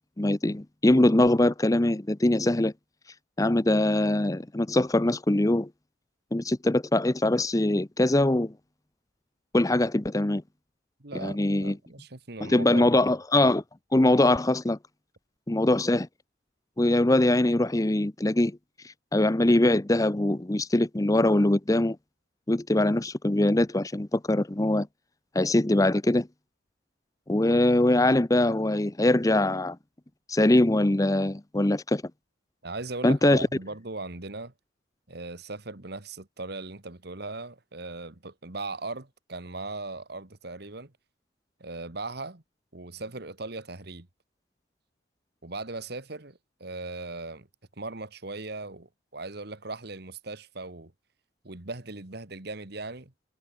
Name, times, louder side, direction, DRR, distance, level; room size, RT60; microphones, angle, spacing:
voice 1, 0.2-2.7 3.4-5.7 6.3-8.5 9.5-10.4 11.2-11.8 12.4-13.6 13.9-14.8 15.5-16.1 16.8-18.6 19.1-22.0 22.5-24.9 25.3-26.3 27.3-29.8 30.3-32.0 33.0-33.5, left 1 dB, 20° left, 0.6 m, -22 dB
voice 2, 11.0-13.1 32.6-34.5 35.1-40.9 41.6-42.4 42.7-44.1 45.4-47.5 47.8-50.9 51.4-53.1, right 3 dB, 55° right, 1.8 m, -38 dB
head